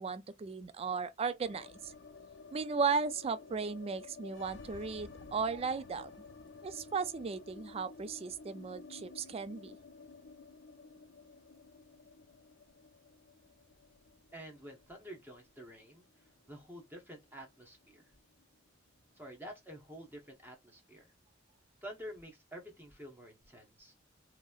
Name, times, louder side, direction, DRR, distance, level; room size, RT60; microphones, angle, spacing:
voice 1, 0.0-1.9 2.5-6.1 6.6-9.8, right 5 dB, 30° right, 0.3 m, -36 dB
sound 1, 1.4-17.5 17.8-17.9 18.2-18.9, left 4 dB, 70° left, 0.5 m, -53 dB
voice 2, 14.3-18.1 19.2-21.1 21.8-23.9, equal, 10° right, 0.9 m, -49 dB
2.9 x 2.6 x 2.3 m
head